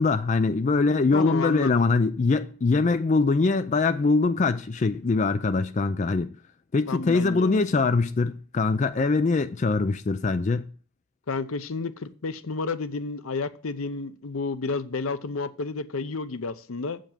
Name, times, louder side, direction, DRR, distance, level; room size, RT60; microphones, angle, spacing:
voice 1, 0.0-6.3 6.7-10.7, left 3 dB, 35° left, 0.4 m, -23 dB
voice 2, 1.1-1.8 6.9-7.7 11.3-17.0, left 4 dB, 80° left, 0.7 m, -31 dB
7.9 x 5.1 x 7.3 m
head